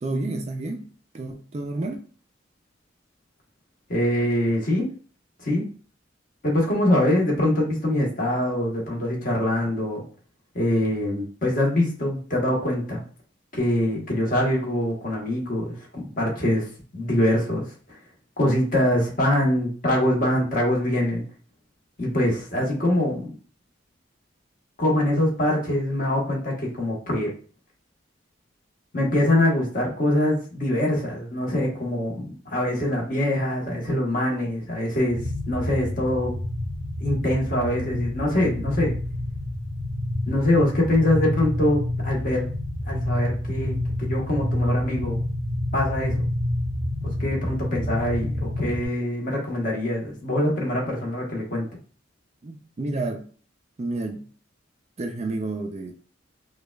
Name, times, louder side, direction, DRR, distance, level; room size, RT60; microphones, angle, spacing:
voice 1, 0.0-0.9 1.1-2.0 52.4-53.3 53.8-54.2 55.0-55.9, right 2 dB, 35° right, 0.4 m, -30 dB
voice 2, 3.9-4.9 5.4-5.7 6.4-10.0 10.5-13.0 13.5-18.0 18.4-21.2 22.0-23.3 24.8-27.3 28.9-36.4 37.0-38.9 40.3-42.4 42.9-45.2 45.7-46.3 47.0-51.7, left 1 dB, 45° left, 1.1 m, -24 dB
sound 1, 35.1-48.9, left 1 dB, 15° left, 0.6 m, -28 dB
4.9 x 2.3 x 2.2 m
head